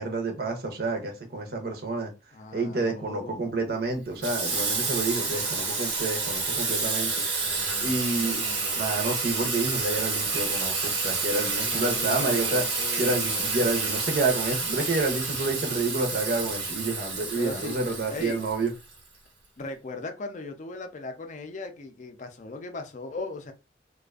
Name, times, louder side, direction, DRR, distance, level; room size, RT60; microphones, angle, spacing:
voice 1, 0.0-2.1 2.5-7.2 7.8-8.4 8.7-12.6 13.0-18.7, right 3 dB, 55° right, 0.6 m, -29 dB
voice 2, 2.3-3.4 7.4-9.1 11.6-13.8 17.4-17.7 18.1-18.4 19.6-23.5, left 3 dB, 45° left, 0.4 m, -39 dB
Water tap faucet / Sink (filling or washing), 4.2-19.0, right 4 dB, 90° right, 1.1 m, -29 dB
2.4 x 2.3 x 2.3 m
head